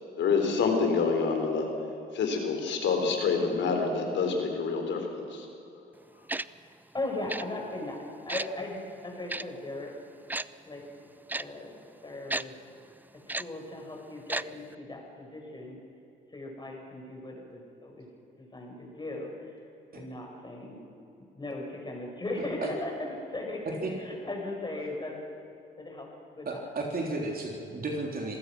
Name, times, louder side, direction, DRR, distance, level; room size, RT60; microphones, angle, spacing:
voice 1, 0.2-1.7 2.1-5.5, left 5 dB, 70° left, 4 dB, 3.9 m, -27 dB
Tick-tock, 6.3-6.4 7.3-7.4 8.3-8.5 9.3-9.4 10.3-10.4 11.3-11.4 12.3-12.4 13.3-13.4 14.3-14.4 14.7-14.8, right 2 dB, 10° right, 0.4 m, -32 dB
voice 2, 6.6-9.9 10.7-10.8 11.4-11.7 12.0-12.6 13.3-15.8 16.3-18.1 18.4-19.6 19.9-20.8 21.3-25.2 25.8-26.1 26.4-26.6, left 2 dB, 20° left, 1 dB, 5.7 m, -38 dB
voice 3, 26.5-28.4, right 2 dB, 50° right, 0 dB, 3.4 m, -33 dB
26.0 x 16.0 x 6.2 m, 2.8 s
cardioid pair, 90°, 20 cm